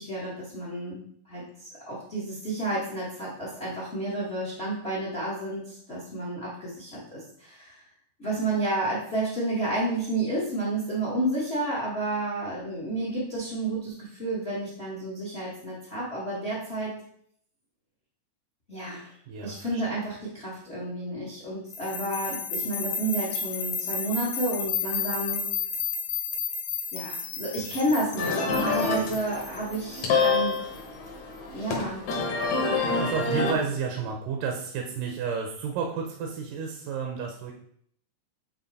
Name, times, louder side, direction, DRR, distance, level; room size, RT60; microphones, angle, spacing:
voice 1, 0.0-7.8 8.2-16.9 18.7-19.1 19.4-25.5 26.9-30.6 31.5-32.1, right 1 dB, 45° left, -5 dB, 0.7 m, -31 dB
voice 2, 19.3-20.0 27.5-27.7 32.9-37.5, right 6 dB, 80° right, 2 dB, 2.3 m, -32 dB
sound 1, 21.7-30.8, left 6 dB, 80° left, 2.4 m, -32 dB
sound 2, 28.2-33.5, left 4 dB, 60° left, 2.3 m, -27 dB
8.9 x 3.0 x 4.1 m, 0.66 s
omnidirectional pair, 3.8 m